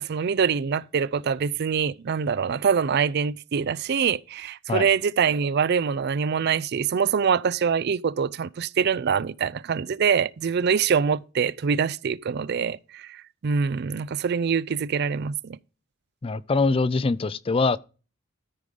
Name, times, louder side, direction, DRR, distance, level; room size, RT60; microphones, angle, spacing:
voice 1, 0.0-15.6, right 6 dB, 50° right, 0.4 m, -24 dB
voice 2, 16.2-17.8, left 3 dB, 25° left, 0.4 m, -23 dB
13.0 x 4.9 x 5.2 m
head